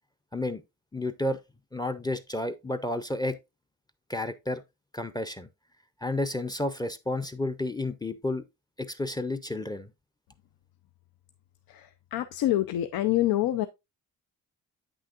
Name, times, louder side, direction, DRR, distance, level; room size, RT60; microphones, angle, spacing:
voice 1, 0.9-1.4 1.7-3.4 4.1-4.6 4.9-5.5 6.0-8.4 8.8-9.9, left 2 dB, 10° left, 0.5 m, -31 dB
voice 2, 11.7-13.7, left 14 dB, 90° left, 0.5 m, -26 dB
8.3 x 6.2 x 2.4 m
cardioid pair, 115°, 35 cm